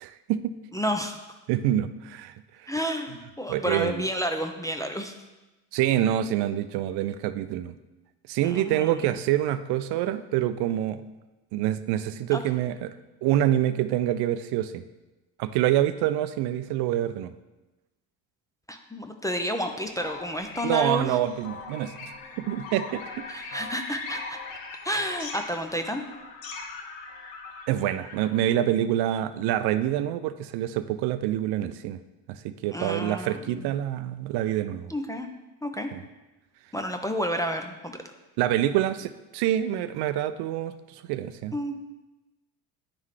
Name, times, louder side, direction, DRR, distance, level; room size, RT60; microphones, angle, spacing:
voice 1, 0.0-0.5 1.5-2.3 2.6-2.7 3.5-4.0 5.7-7.7 8.3-11.0 11.5-12.9 13.2-14.8 15.4-17.3 20.6-22.1 22.5-23.2 27.7-32.0 32.3-34.9 35.9-36.0 38.4-41.6, right 12 dB, 60° right, 12 dB, 0.5 m, -26 dB
voice 2, 0.7-1.2 2.7-5.1 8.4-9.1 12.3-12.4 18.7-21.2 23.3-24.4 24.8-26.0 32.7-33.7 34.9-35.3 35.6-35.9 36.7-38.0 41.5-41.7, equal, 10° left, 4 dB, 0.4 m, -30 dB
sound 1, 19.8-28.4, left 4 dB, 70° left, 1.2 m, -40 dB
9.6 x 3.7 x 3.2 m, 1.1 s
hypercardioid pair, 75°, 46 cm